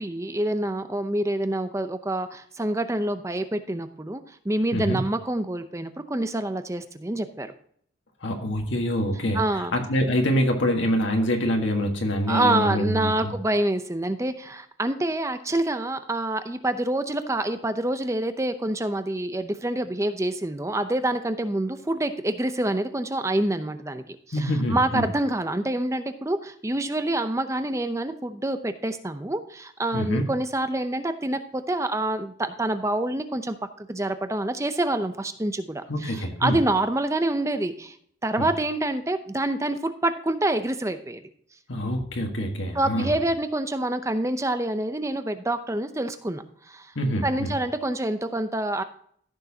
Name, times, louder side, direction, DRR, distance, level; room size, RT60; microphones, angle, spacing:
voice 1, 0.0-7.5 9.3-9.7 12.3-38.0 38.2-41.2 42.7-46.9 47.2-48.8, right 1 dB, 15° right, 9 dB, 0.6 m, -27 dB
voice 2, 8.2-13.3 24.3-25.1 29.9-30.2 35.9-36.6 38.4-38.5 41.7-43.2 46.9-47.5, equal, 65° left, 2 dB, 1.5 m, -25 dB
14.5 x 6.7 x 2.8 m, 0.63 s
head